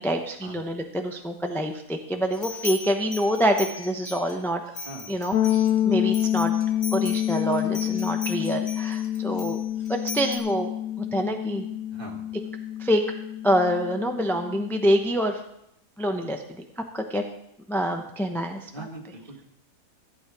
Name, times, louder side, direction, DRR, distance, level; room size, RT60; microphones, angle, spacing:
voice 1, 0.0-4.6 5.1-6.5 6.9-9.6 9.9-10.7 11.1-11.6 12.8-13.0 13.4-15.4 16.0-16.6 16.9-17.2 17.7-18.9, equal, 5° left, 4 dB, 0.4 m, -26 dB
sound 1, 2.3-4.3 4.7-10.4, left 4 dB, 40° left, 1.8 m, -39 dB
voice 2, 4.9-5.2 11.9-12.2 18.7-19.4, right 2 dB, 30° right, 0 dB, 2.2 m, -41 dB
sound 2, 5.3-15.0, left 11 dB, 75° left, 1.2 m, -27 dB
14.5 x 8.8 x 4.8 m, 0.81 s
omnidirectional pair, 1.7 m